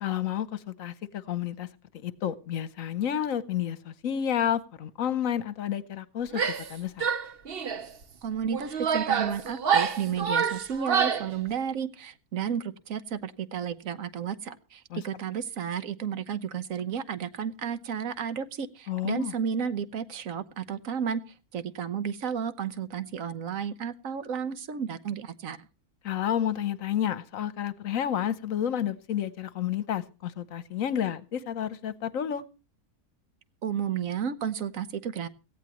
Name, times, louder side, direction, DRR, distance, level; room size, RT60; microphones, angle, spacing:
voice 1, 0.0-1.7 2.0-7.1 14.9-15.0 18.9-19.3 26.0-32.4, left 10 dB, 70° left, 16 dB, 1.2 m, -30 dB
Female speech woman speaking / Yell, 6.3-6.7 7.0-7.9 8.5-11.3, right 7 dB, 45° right, 1.1 m, -27 dB
voice 2, 8.2-21.2 21.5-25.7 33.6-35.3, right 7 dB, 70° right, 14 dB, 1.4 m, -32 dB
17.5 x 15.0 x 3.0 m, 0.32 s
omnidirectional pair, 1.5 m